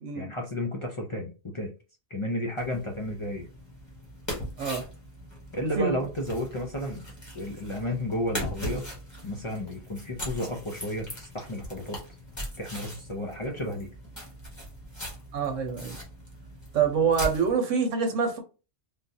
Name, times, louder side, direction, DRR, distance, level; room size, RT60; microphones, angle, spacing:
voice 1, 0.1-1.7 2.1-3.5 5.5-7.0 7.3-8.9 9.2-12.0 12.6-13.9, left 1 dB, 40° left, 0.4 m, -32 dB
sound 1, 2.6-17.5, equal, 15° left, 1.2 m, -40 dB
voice 2, 15.3-16.0 16.7-18.4, right 6 dB, 85° right, 1.1 m, -26 dB
3.6 x 2.5 x 2.6 m
omnidirectional pair, 1.3 m